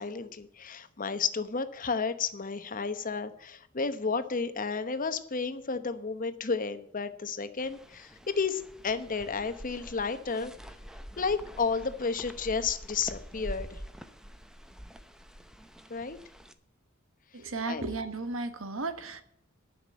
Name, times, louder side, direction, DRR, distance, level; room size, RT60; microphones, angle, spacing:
voice 1, 0.0-10.5 11.2-13.8 15.9-16.2 17.7-17.8, left 5 dB, 45° left, 11 dB, 0.9 m, -32 dB
sound 1, 7.6-16.5, equal, 5° right, 0.8 m, -46 dB
voice 2, 17.3-19.2, right 3 dB, 85° right, 9 dB, 1.4 m, -34 dB
11.5 x 6.0 x 8.6 m, 0.71 s
head